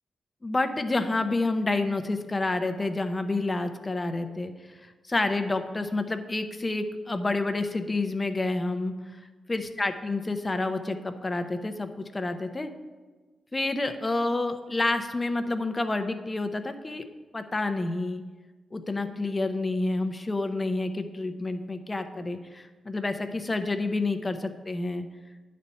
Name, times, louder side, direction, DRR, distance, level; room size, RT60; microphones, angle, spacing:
voice 1, 0.4-4.5 4.8-8.9 9.5-12.7 13.5-17.0 17.3-18.2 18.7-25.1, left 2 dB, 25° left, 8 dB, 0.7 m, -29 dB
10.0 x 4.2 x 5.4 m, 1.3 s
cardioid pair, 80°, 0 cm